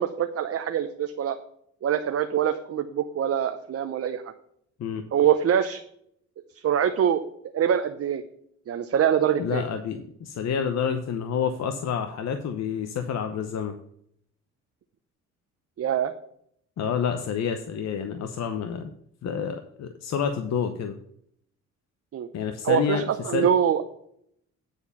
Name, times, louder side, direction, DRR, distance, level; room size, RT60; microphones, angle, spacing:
voice 1, 0.0-1.4 1.8-4.3 5.1-5.8 6.6-7.2 7.5-8.2 8.7-9.6 15.8-16.1 22.1-22.3 22.6-23.8, right 9 dB, 50° right, 7 dB, 0.7 m, -24 dB
voice 2, 9.4-13.7 16.8-18.9 19.2-20.9 22.3-23.0 23.3-23.5, left 7 dB, 60° left, 7 dB, 0.9 m, -28 dB
9.6 x 4.5 x 6.9 m, 0.69 s
cardioid pair, 90°, 30 cm